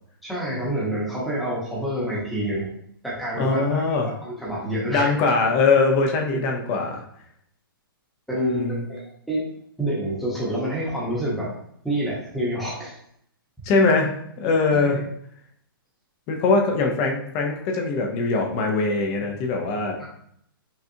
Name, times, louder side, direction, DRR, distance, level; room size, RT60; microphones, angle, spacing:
voice 1, 0.2-2.7 3.0-5.1 6.3-6.5 8.3-8.6 8.9-9.5 9.8-11.5 11.8-13.0 14.7-15.0 20.0-20.1, right 1 dB, ahead, -7 dB, 0.9 m, -28 dB
voice 2, 3.3-4.1 4.9-7.0 8.3-8.9 13.6-15.0 16.3-20.0, left 3 dB, 20° left, 2 dB, 0.5 m, -22 dB
5.4 x 2.3 x 2.7 m, 0.69 s
hypercardioid pair, 165°, 12 cm